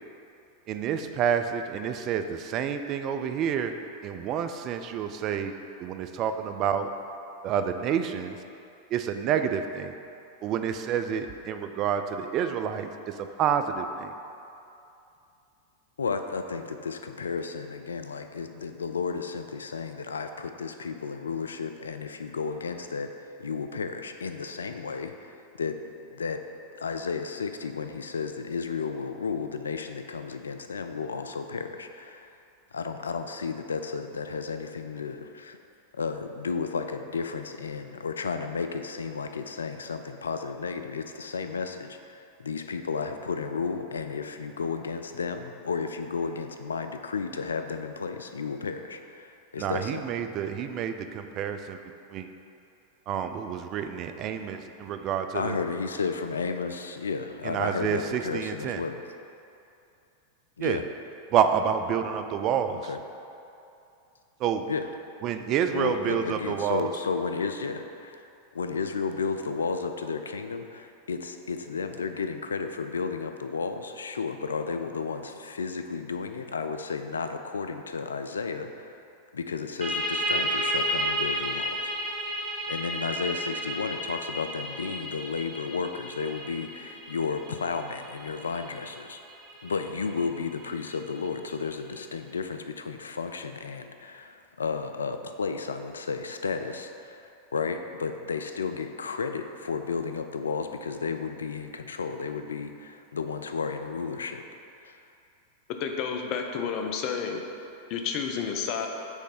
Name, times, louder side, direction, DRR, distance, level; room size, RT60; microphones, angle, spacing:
voice 1, 0.7-3.7 4.0-5.5 5.8-6.9 7.4-8.4 8.9-10.0 10.4-14.1 49.6-51.8 52.1-52.3 53.1-55.6 57.4-58.8 60.6-60.8 61.3-62.9 64.4-64.7 65.2-66.9, right 8 dB, 40° right, 8 dB, 0.4 m, -28 dB
voice 2, 16.0-23.1 23.4-25.8 26.1-26.4 26.8-32.3 32.7-35.6 35.9-50.0 55.3-59.0 60.6-60.8 62.9-63.0 64.7-64.9 65.7-68.2 68.5-78.9 79.3-81.9 82.7-89.2 89.6-104.4 104.8-105.0, left 5 dB, 85° left, 7 dB, 0.3 m, -33 dB
sound 1, 79.8-91.2, right 1 dB, 20° right, 1.2 m, -33 dB
voice 3, 105.8-107.4 107.9-108.9, left 6 dB, 50° left, 3 dB, 0.6 m, -30 dB
6.3 x 3.2 x 5.0 m, 2.7 s
hypercardioid pair, 95°, 0 cm